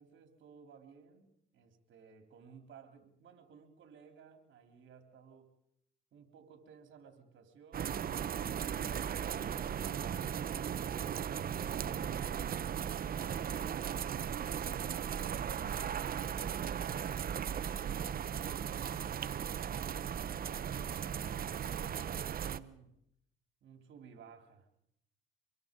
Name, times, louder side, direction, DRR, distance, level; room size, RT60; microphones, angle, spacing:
voice 1, 0.0-5.5 6.1-10.6 16.3-20.1 20.8-23.0 23.6-24.7, right 6 dB, 70° right, 5 dB, 3.6 m, -57 dB
sound 1, 7.7-22.6, right 8 dB, 50° right, 0.8 m, -37 dB
25.5 x 23.0 x 5.3 m, 0.77 s
cardioid pair, 90°, 20 cm